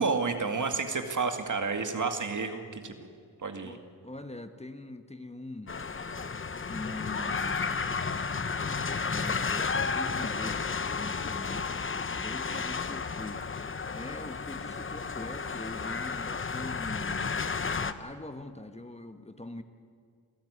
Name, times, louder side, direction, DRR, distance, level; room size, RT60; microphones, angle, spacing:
voice 1, 0.0-3.1 3.4-3.8 12.5-12.8, right 4 dB, 55° right, 6 dB, 2.2 m, -31 dB
voice 2, 3.6-5.8 6.6-7.9 8.6-11.7 12.2-13.4 13.9-17.3 17.7-19.6, left 2 dB, 15° left, 8 dB, 1.3 m, -42 dB
sound 1, 5.7-17.9, left 5 dB, 35° left, 1.0 m, -32 dB
25.5 x 13.0 x 9.8 m, 2.1 s
cardioid pair, 60°, 37 cm